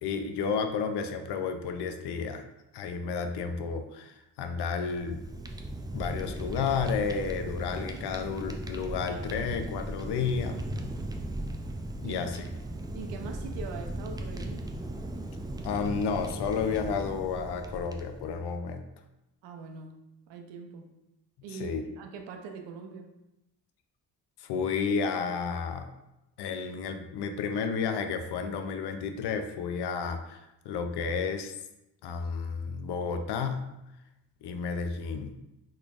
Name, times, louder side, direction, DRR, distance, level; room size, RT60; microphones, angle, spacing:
voice 1, 0.0-2.4 2.7-5.2 5.9-10.6 12.0-12.4 15.6-18.8 21.5-21.8 24.4-25.9 26.4-31.5 32.0-33.7 34.4-35.4, left 5 dB, 70° left, 7 dB, 0.5 m, -31 dB
Fire, 4.8-18.3, right 1 dB, 10° right, 0.3 m, -37 dB
voice 2, 12.9-14.6 19.4-19.9 20.3-20.9 21.4-23.1, right 5 dB, 85° right, 4 dB, 0.6 m, -42 dB
3.9 x 3.1 x 2.4 m, 0.90 s
supercardioid pair, 60°, 42 cm